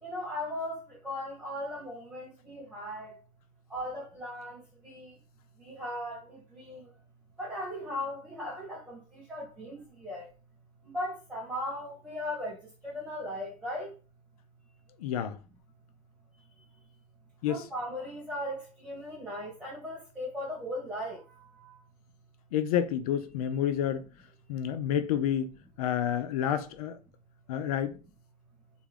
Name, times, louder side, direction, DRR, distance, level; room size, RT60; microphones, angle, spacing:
voice 1, 0.0-3.2 3.7-5.1 5.6-6.8 7.4-10.3 10.8-12.6 12.8-13.9 17.4-21.8, left 1 dB, 5° right, 1.7 m, -38 dB
voice 2, 15.0-15.4 17.4-17.6 22.5-24.1 24.5-27.0 27.5-28.0, left 9 dB, 85° left, 0.5 m, -29 dB
3.3 x 2.3 x 3.5 m
supercardioid pair, 90°, 18 cm